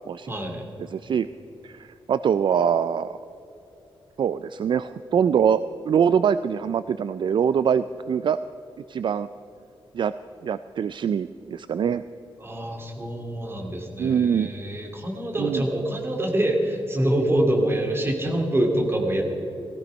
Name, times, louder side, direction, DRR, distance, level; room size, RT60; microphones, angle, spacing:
voice 1, 0.3-0.6 12.4-19.2, right 1 dB, 25° right, 1 dB, 2.4 m, -25 dB
voice 2, 0.9-1.3 1.6-3.2 4.2-8.4 8.9-9.3 9.9-10.1 10.4-12.0 14.0-14.5 15.4-15.6, right 7 dB, 55° right, 13 dB, 0.4 m, -23 dB
17.5 x 15.0 x 5.4 m, 2.9 s
wide cardioid pair, 165°, 10 cm